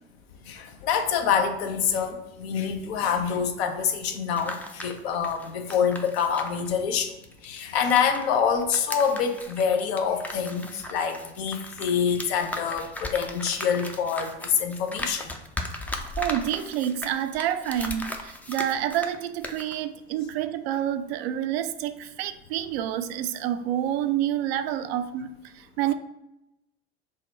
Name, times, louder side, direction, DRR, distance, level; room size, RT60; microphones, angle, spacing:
voice 1, 0.5-7.1 7.4-15.3, left 7 dB, 70° left, 6 dB, 0.7 m, -26 dB
sound 1, 4.2-8.3 8.6-19.2 19.4-19.7, left 1 dB, 5° left, 0.4 m, -37 dB
voice 2, 16.2-25.9, right 11 dB, 65° right, 10 dB, 0.4 m, -28 dB
3.6 x 2.1 x 4.1 m, 0.90 s
hypercardioid pair, 70°, 33 cm